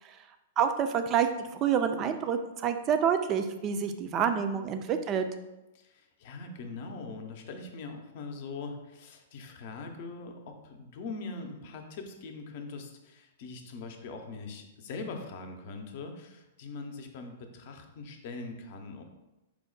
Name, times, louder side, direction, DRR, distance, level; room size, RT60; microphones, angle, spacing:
voice 1, 0.6-5.3, right 7 dB, 35° right, 8 dB, 0.3 m, -28 dB
voice 2, 5.7-19.0, left 3 dB, 55° left, 4 dB, 0.6 m, -42 dB
4.5 x 2.1 x 3.8 m, 1.0 s
hypercardioid pair, 115°, 0 cm